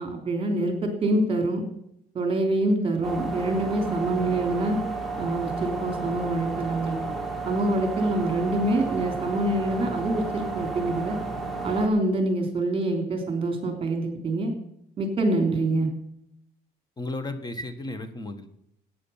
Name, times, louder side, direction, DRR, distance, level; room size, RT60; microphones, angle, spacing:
voice 1, 0.0-1.6 2.1-4.8 5.2-7.0 7.4-11.2 11.6-14.5 15.0-15.9, right 2 dB, 35° right, 5 dB, 3.3 m, -25 dB
sound 1, 3.0-11.9, right 3 dB, ahead, 2.8 m, -32 dB
voice 2, 17.0-18.5, left 2 dB, 25° left, 11 dB, 1.3 m, -34 dB
14.0 x 9.5 x 5.7 m, 0.76 s
cardioid pair, 110°, 17 cm